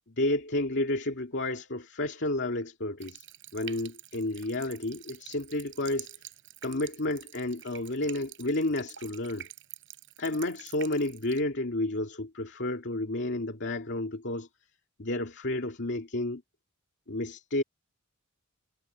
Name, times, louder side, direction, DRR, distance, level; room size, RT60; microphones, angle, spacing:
voice 1, 0.1-3.2 3.5-6.1 6.6-9.5 10.2-14.5 15.0-16.4 17.1-17.6, left 1 dB, 55° left, 2.4 m, -31 dB
Water tap faucet, 3.0-11.4, right 13 dB, 60° right, 5.8 m, -48 dB
head